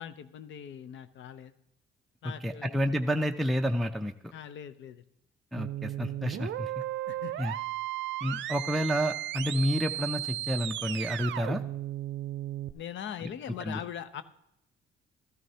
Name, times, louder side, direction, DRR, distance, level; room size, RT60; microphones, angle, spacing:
voice 1, 0.0-1.5 2.2-2.7 4.3-5.0 7.1-7.3 9.5-9.6 12.7-14.2, left 9 dB, 70° left, 13 dB, 0.6 m, -41 dB
voice 2, 2.2-4.3 5.5-6.8 7.4-7.5 8.2-11.6 13.2-13.3 13.6-13.8, equal, ahead, 4 dB, 0.5 m, -30 dB
sound 1, 5.6-12.7, right 13 dB, 70° right, 0.5 m, -35 dB
13.5 x 12.5 x 2.8 m, 0.82 s
cardioid pair, 90°, 20 cm